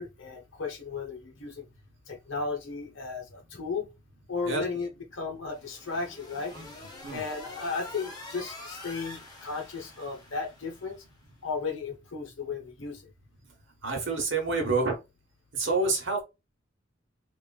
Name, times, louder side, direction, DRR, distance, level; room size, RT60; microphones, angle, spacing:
voice 1, 0.0-1.7 2.1-3.9 4.3-6.5 7.1-11.0 11.4-13.0, left 4 dB, 85° left, 1.0 m, -35 dB
sound 1, 5.5-11.1, left 2 dB, 20° left, 0.8 m, -46 dB
voice 2, 13.8-15.0 15.5-16.2, right 3 dB, 75° right, 1.1 m, -28 dB
3.4 x 2.4 x 2.3 m
head